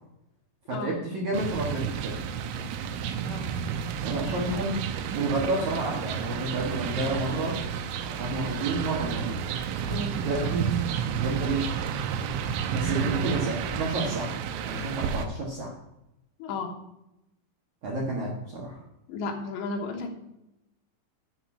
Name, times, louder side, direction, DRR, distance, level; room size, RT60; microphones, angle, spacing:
voice 1, 0.7-2.2 4.0-4.8 5.1-7.6 8.1-9.4 10.2-10.8 11.2-11.6 12.7-14.4 14.6-15.7 17.8-18.8, right 2 dB, 65° right, -3 dB, 1.9 m, -30 dB
sound 1, 1.3-15.3, right 7 dB, 80° right, 3.0 m, -31 dB
voice 2, 3.2-3.5 9.8-10.2 12.9-13.4 16.4-16.8 19.1-20.2, left 3 dB, 75° left, 2 dB, 3.2 m, -34 dB
12.0 x 4.4 x 6.0 m, 0.89 s
omnidirectional pair, 5.6 m